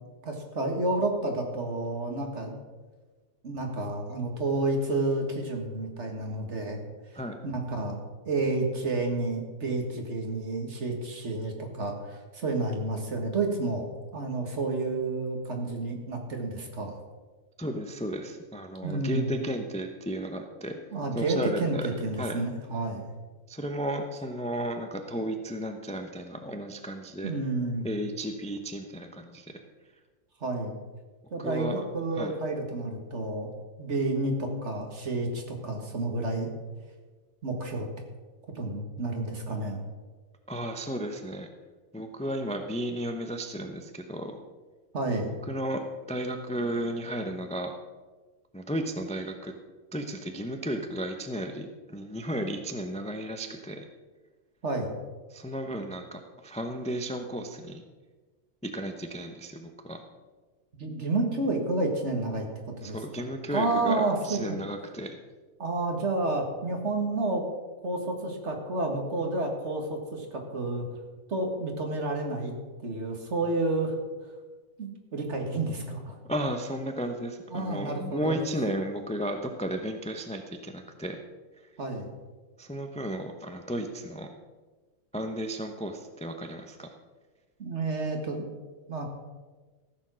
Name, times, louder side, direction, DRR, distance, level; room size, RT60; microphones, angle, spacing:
voice 1, 0.2-2.6 3.4-6.8 7.4-8.0 8.3-13.9 14.1-17.0 18.8-19.3 20.9-23.1 27.2-27.9 30.4-30.8 31.3-33.5 33.8-36.5 37.4-37.9 38.6-39.8 44.9-45.3 54.6-55.0 60.8-62.5 62.8-63.0 63.5-64.6 65.6-67.4 67.8-70.8 71.3-72.5 72.8-74.0 74.8-76.2 77.5-78.4 81.8-82.1 87.6-88.4 88.9-89.1, right 2 dB, 55° right, 3 dB, 2.0 m, -30 dB
voice 2, 17.6-20.8 21.1-21.9 22.2-22.4 23.5-27.3 27.8-29.5 31.4-31.8 32.1-32.3 40.5-41.5 41.9-44.4 45.5-47.7 48.5-49.5 49.9-53.8 55.3-57.8 58.6-60.0 62.8-65.2 76.3-81.2 82.6-84.3 85.1-86.9, right 1 dB, 5° left, 5 dB, 0.6 m, -34 dB
15.0 x 7.1 x 6.2 m, 1.3 s
omnidirectional pair, 1.5 m